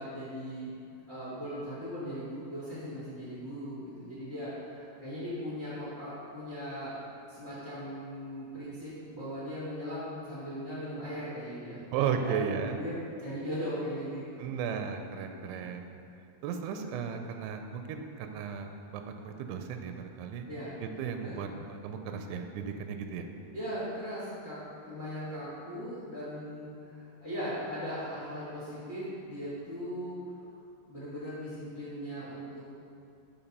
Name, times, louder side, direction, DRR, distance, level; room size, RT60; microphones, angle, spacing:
voice 1, 0.0-6.9 7.3-14.5 15.3-15.5 20.4-20.7 21.2-21.4 23.5-30.2 30.9-32.6, equal, 40° left, -10 dB, 0.9 m, -39 dB
voice 2, 11.9-12.8 14.4-15.9 16.4-20.5 20.8-23.3, right 7 dB, 90° right, 6 dB, 2.6 m, -35 dB
8.7 x 4.3 x 5.3 m, 2.5 s
omnidirectional pair, 4.6 m